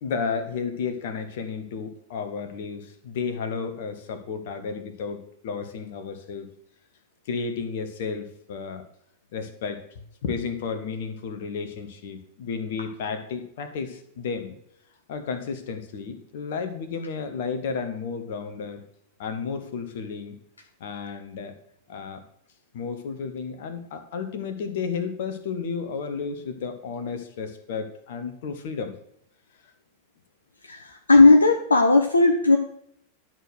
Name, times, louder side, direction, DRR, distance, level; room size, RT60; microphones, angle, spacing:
voice 1, 0.0-6.5 7.3-8.8 9.3-14.6 15.1-18.8 19.2-20.4 20.8-21.5 21.9-22.2 22.7-28.9, left 5 dB, 55° left, 9 dB, 1.3 m, -32 dB
voice 2, 30.7-32.6, left 3 dB, 75° left, 4 dB, 0.8 m, -16 dB
11.0 x 4.6 x 6.4 m, 0.70 s
figure-of-eight pair, 90°, 0 cm